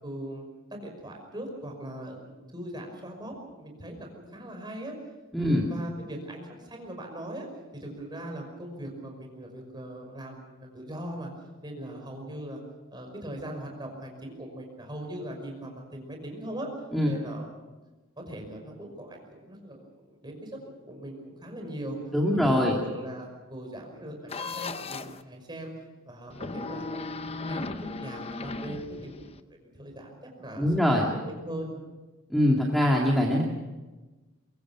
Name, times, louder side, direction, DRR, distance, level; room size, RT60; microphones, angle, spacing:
voice 1, 0.0-4.9 5.4-7.5 7.7-11.3 11.6-12.6 12.9-16.7 17.1-17.8 18.3-22.0 22.3-25.7 26.1-31.2 31.4-31.8, right 1 dB, 20° right, 2 dB, 5.5 m, -40 dB
voice 2, 5.3-5.6 16.9-17.1 22.1-22.8 30.6-31.1 32.3-33.4, equal, ahead, -2 dB, 2.3 m, -23 dB
sound 1, 24.3-25.2 26.3-29.4, left 3 dB, 30° left, 0.8 m, -36 dB
23.5 x 23.0 x 6.2 m, 1.2 s
head